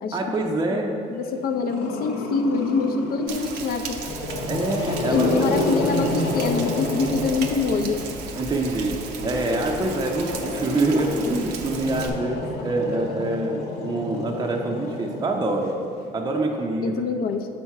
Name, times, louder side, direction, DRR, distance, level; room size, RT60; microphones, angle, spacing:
voice 1, 0.1-0.9 4.5-5.3 8.4-15.7 16.1-17.0, right 2 dB, 25° right, 1 dB, 0.5 m, -25 dB
voice 2, 1.1-4.0 5.1-8.0 16.8-17.5, left 4 dB, 60° left, 7 dB, 0.5 m, -25 dB
Growling, 1.7-3.4 4.0-8.1 9.1-15.6, left 2 dB, 85° left, 0.9 m, -29 dB
Rain, 3.3-12.1, right 5 dB, 85° right, 0.6 m, -36 dB
6.7 x 4.3 x 4.6 m, 2.6 s
cardioid pair, 110°, 17 cm